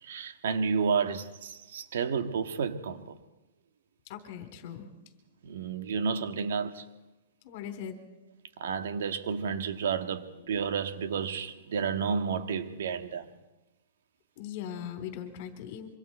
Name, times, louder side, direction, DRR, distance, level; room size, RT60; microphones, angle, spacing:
voice 1, 0.0-3.2 5.4-6.8 8.6-13.3, right 6 dB, 75° right, 1.8 m, -31 dB
voice 2, 4.1-4.9 7.4-8.0 14.4-16.0, left 9 dB, 45° left, 3.6 m, -39 dB
26.5 x 25.0 x 4.5 m
hypercardioid pair, 150°, 0 cm